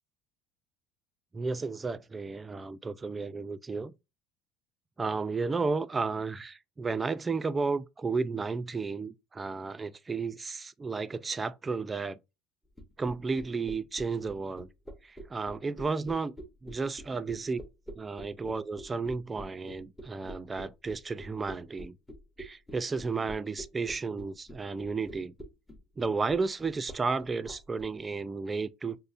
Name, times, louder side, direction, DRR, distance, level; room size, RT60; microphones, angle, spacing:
voice 1, 1.3-3.9 5.0-12.2 13.0-14.7 15.0-16.3 16.6-17.6 18.0-22.0 22.4-25.3 26.0-29.0, right 4 dB, 20° right, 0.3 m, -33 dB
sound 1, 12.8-27.9, equal, 10° left, 0.7 m, -45 dB
5.3 x 2.0 x 2.4 m
supercardioid pair, 100°, 0 cm